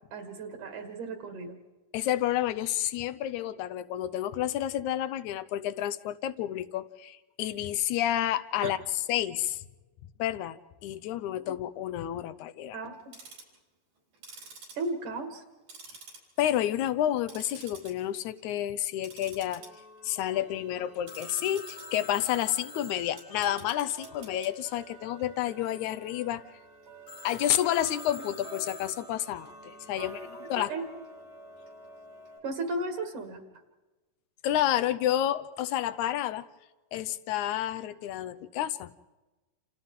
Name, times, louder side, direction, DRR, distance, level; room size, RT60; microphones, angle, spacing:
voice 1, 0.1-1.6 8.6-8.7 12.7-13.0 14.8-15.4 30.0-30.1 30.5-30.8 32.4-33.4, right 2 dB, 65° right, 4 dB, 3.1 m, -35 dB
voice 2, 1.9-8.8 9.1-9.6 10.2-10.6 10.8-12.8 16.4-19.6 20.0-26.4 27.2-30.2 30.5-30.7 34.4-36.4 36.9-38.9, left 12 dB, 75° left, 13 dB, 2.0 m, -30 dB
Tick-tock, 12.9-13.6 14.1-15.4 15.7-16.6 16.9-17.9 18.3-18.5 19.0-32.4, right 3 dB, 80° right, 5.9 m, -49 dB
Telephone, 21.1-24.7 27.1-29.6, left 4 dB, 45° left, 1.9 m, -47 dB
29.0 x 28.5 x 3.7 m, 1.2 s
omnidirectional pair, 3.8 m